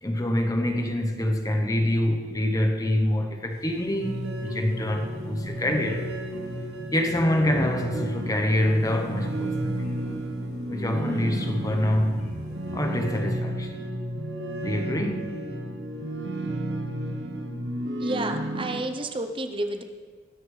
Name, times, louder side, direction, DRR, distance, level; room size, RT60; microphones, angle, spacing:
voice 1, 0.0-6.1 6.9-9.9 10.7-12.3 12.7-13.8 14.6-15.3, left 1 dB, 15° left, 1.0 m, -26 dB
sound 1, 3.5-13.2, equal, 50° left, 3.4 m, -48 dB
sound 2, 4.0-18.8, right 1 dB, 60° right, 1.4 m, -32 dB
voice 2, 18.0-19.8, right 2 dB, 25° right, 0.8 m, -30 dB
21.5 x 10.0 x 3.3 m
head